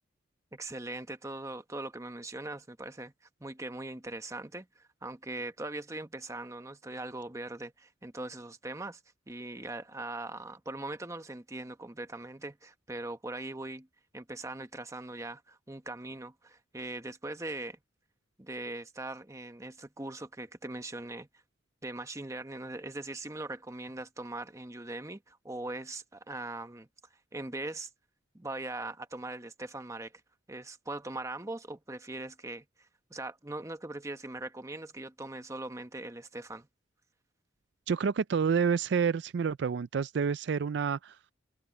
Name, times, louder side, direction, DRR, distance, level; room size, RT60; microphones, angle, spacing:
voice 1, 0.5-3.1 3.4-9.0 9.3-13.9 14.1-17.8 18.4-21.3 21.8-26.9 27.3-27.9 28.3-30.1 30.5-36.7, right 2 dB, 15° right, 1.1 m, -40 dB
voice 2, 37.9-41.2, right 6 dB, 65° right, 0.4 m, -28 dB
head